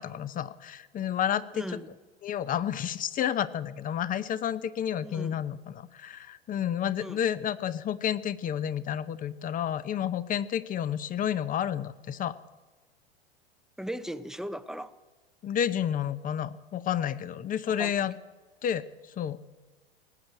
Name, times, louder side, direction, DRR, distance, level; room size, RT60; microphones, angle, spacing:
voice 1, 0.0-1.6 2.2-12.4 15.4-18.1 18.6-18.8 19.2-19.4, left 9 dB, 25° left, 16 dB, 0.8 m, -30 dB
voice 2, 1.5-2.0 5.0-5.5 7.0-7.2 13.8-14.9 17.7-18.1, equal, ahead, 12 dB, 0.7 m, -38 dB
18.5 x 8.0 x 9.1 m, 1.3 s
hypercardioid pair, 95°, 31 cm